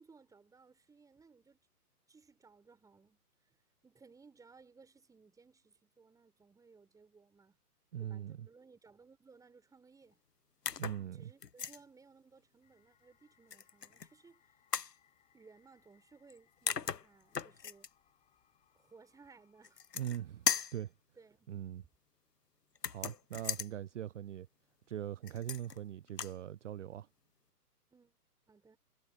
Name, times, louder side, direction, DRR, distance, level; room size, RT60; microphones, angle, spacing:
voice 1, 0.0-1.6 2.1-3.6 3.8-7.6 8.0-10.2 10.9-14.4 15.3-17.9 18.7-19.8 21.2-21.6 27.9-28.2 28.5-28.8, right 4 dB, 5° right, 6.5 m, -61 dB
voice 2, 7.9-8.5 10.8-11.3 20.0-20.9 21.5-21.8 22.9-24.5 24.9-27.1, right 11 dB, 50° right, 0.7 m, -41 dB
sound 1, 10.7-11.0 11.4-11.8 13.5-14.1 14.7-15.0 16.3-16.4 16.7-17.9 19.6-20.2 20.5-20.8 22.8-23.7 25.3-25.8 26.1-26.4, left 6 dB, 90° left, 1.0 m, -37 dB
sound 2, 12.6-21.0, left 9 dB, 15° left, 6.9 m, -74 dB
figure-of-eight pair, 130°, 47 cm